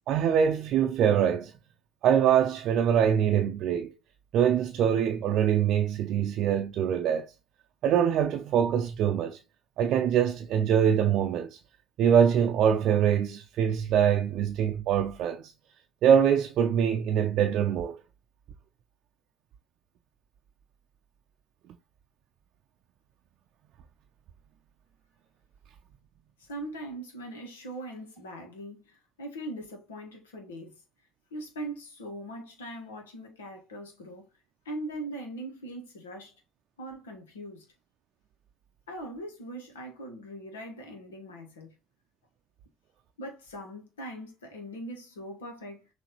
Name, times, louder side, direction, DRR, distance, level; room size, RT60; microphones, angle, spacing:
voice 1, 0.0-1.5 2.0-3.9 4.3-7.3 7.8-9.4 9.8-11.6 12.0-15.5 16.0-17.9, right 8 dB, 60° right, 0.5 m, -24 dB
voice 2, 26.4-30.7 31.3-34.2 34.6-36.3 36.8-37.6 38.9-41.7 43.2-45.9, right 1 dB, 80° left, 1.3 m, -41 dB
6.2 x 2.7 x 2.9 m
hypercardioid pair, 60°, 0 cm